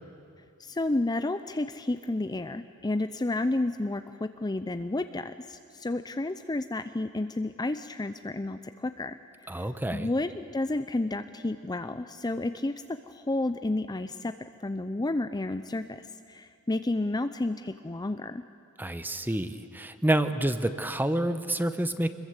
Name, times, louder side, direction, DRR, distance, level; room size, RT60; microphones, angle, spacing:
voice 1, 0.6-9.2 9.4-12.7 13.1-14.3 14.6-18.4, left 2 dB, 20° left, 9 dB, 0.6 m, -31 dB
voice 2, 9.5-10.1 18.8-22.1, right 1 dB, 10° right, 11 dB, 1.0 m, -28 dB
25.5 x 22.0 x 8.2 m, 2.6 s
head